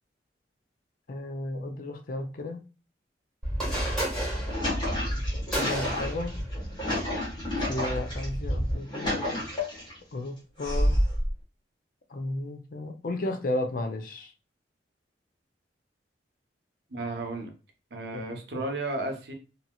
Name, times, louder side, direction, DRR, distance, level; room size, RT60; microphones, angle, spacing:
voice 1, 1.1-2.6 5.5-6.4 7.7-9.4 10.1-11.0 12.1-14.3 18.1-18.2 18.5-18.6, left 2 dB, 50° left, 0.5 m, -33 dB
sound 1, 3.4-8.8, equal, ahead, 1.6 m, -31 dB
sound 2, 4.3-8.2 8.7-10.0 10.6-11.3, left 1 dB, 25° left, 1.2 m, -30 dB
voice 2, 16.9-17.5 17.9-19.3, right 2 dB, 65° right, 0.8 m, -33 dB
2.9 x 2.7 x 2.3 m
head